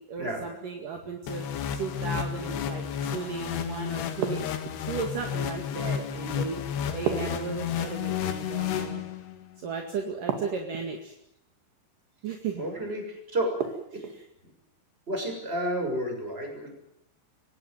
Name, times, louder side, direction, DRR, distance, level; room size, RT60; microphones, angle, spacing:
voice 1, 0.0-4.4 4.8-6.7 6.9-9.0 9.6-11.2 12.2-12.7 13.9-14.2, right 5 dB, 60° right, 3 dB, 3.5 m, -35 dB
sound 1, 1.3-9.4, left 9 dB, 80° left, 3.9 m, -32 dB
sound 2, 4.2-5.0 7.1-8.1 10.3-11.0 13.6-14.2, right 7 dB, 85° right, 4.3 m, -32 dB
voice 2, 12.6-13.6 13.9-14.0 15.1-16.8, right 1 dB, 15° right, 2 dB, 7.1 m, -31 dB
24.0 x 18.0 x 9.3 m, 0.77 s
omnidirectional pair, 4.7 m